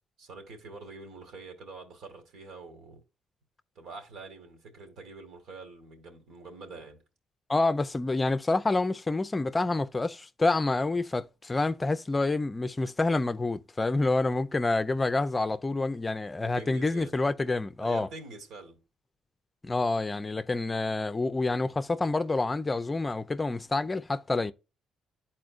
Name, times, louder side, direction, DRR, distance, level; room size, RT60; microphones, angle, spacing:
voice 1, 0.2-3.0 3.8-7.0 16.5-17.1 17.8-18.8, right 3 dB, 80° right, 2.4 m, -45 dB
voice 2, 7.5-18.1 19.6-24.5, left 3 dB, 25° left, 0.5 m, -28 dB
11.5 x 4.3 x 2.5 m
cardioid pair, 90°, 0 cm